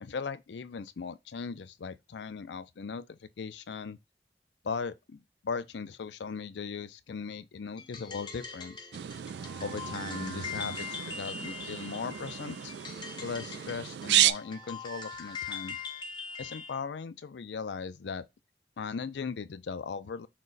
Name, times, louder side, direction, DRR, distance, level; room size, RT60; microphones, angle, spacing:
voice 1, 0.0-4.0 4.6-8.9 9.6-12.7 13.2-15.8 16.4-18.2 18.8-20.3, left 5 dB, 80° left, 0.5 m, -38 dB
sound 1, 7.8-16.8, left 5 dB, 25° left, 0.7 m, -42 dB
sound 2, 8.9-14.3, right 12 dB, 75° right, 0.3 m, -32 dB
6.3 x 2.2 x 3.9 m
head